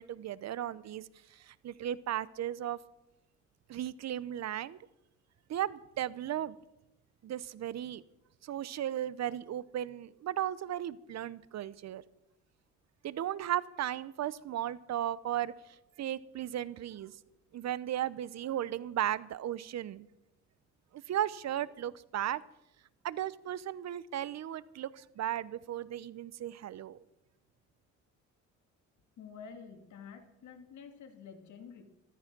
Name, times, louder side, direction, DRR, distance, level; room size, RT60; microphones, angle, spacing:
voice 1, 0.0-2.8 3.7-4.8 5.5-6.6 7.2-8.0 8.4-12.0 13.0-15.5 16.0-17.1 17.5-20.1 20.9-22.4 23.0-27.0, right 11 dB, 60° right, 19 dB, 0.8 m, -36 dB
voice 2, 29.2-31.8, left 6 dB, 70° left, 7 dB, 2.3 m, -49 dB
14.0 x 13.5 x 6.1 m, 0.90 s
cardioid pair, 90°, 30 cm